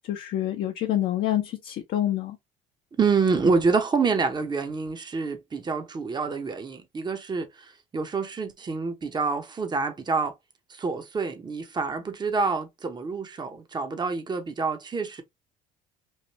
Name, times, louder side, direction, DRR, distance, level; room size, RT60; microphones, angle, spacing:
voice 1, 0.0-2.4, left 12 dB, 60° left, 0.6 m, -27 dB
voice 2, 3.0-10.3 10.7-15.2, right 4 dB, 25° right, 0.8 m, -27 dB
3.2 x 2.5 x 2.9 m
supercardioid pair, 75°, 18 cm